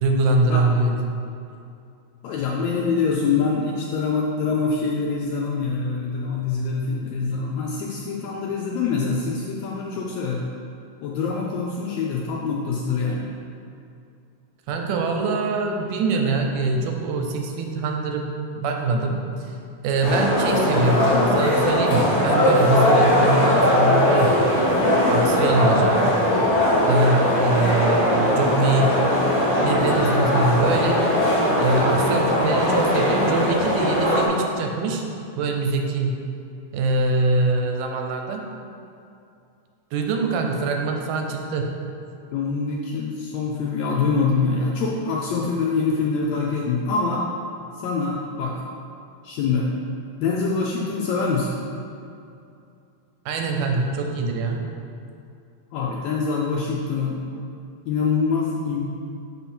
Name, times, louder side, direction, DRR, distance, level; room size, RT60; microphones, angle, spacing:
voice 1, 0.0-1.1 14.7-18.3 18.6-19.5 19.8-24.4 25.0-26.0 26.9-29.0 29.6-31.1 31.6-35.0 35.4-36.1 36.7-38.4 39.9-41.7 53.3-54.7, right 3 dB, 85° right, 2 dB, 2.3 m, -23 dB
voice 2, 2.2-10.5 11.0-13.3 42.3-47.2 47.8-48.5 49.2-49.7 50.2-51.6 55.7-57.2 57.9-58.8, left 4 dB, 80° left, -2 dB, 1.6 m, -24 dB
sound 1, 20.0-34.3, left 1 dB, 25° left, 0.7 m, -20 dB
6.2 x 5.5 x 4.4 m, 2.5 s
omnidirectional pair, 3.7 m